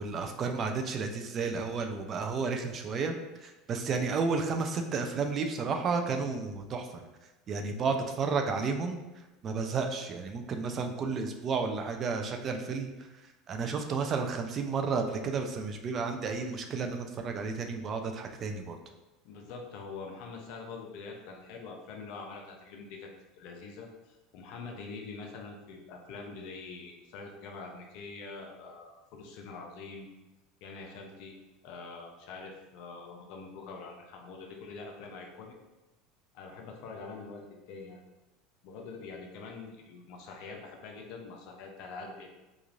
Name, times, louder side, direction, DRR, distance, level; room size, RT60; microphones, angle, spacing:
voice 1, 0.0-3.2 3.4-7.0 7.5-9.0 9.4-13.1 13.5-18.8, right 4 dB, 40° right, 5 dB, 0.3 m, -32 dB
voice 2, 19.2-23.1 23.3-30.1 30.6-31.3 31.6-35.5 36.3-38.1 38.6-42.3, left 4 dB, 65° left, 1 dB, 0.5 m, -44 dB
3.0 x 2.4 x 2.4 m, 1.0 s
supercardioid pair, 100°, 0 cm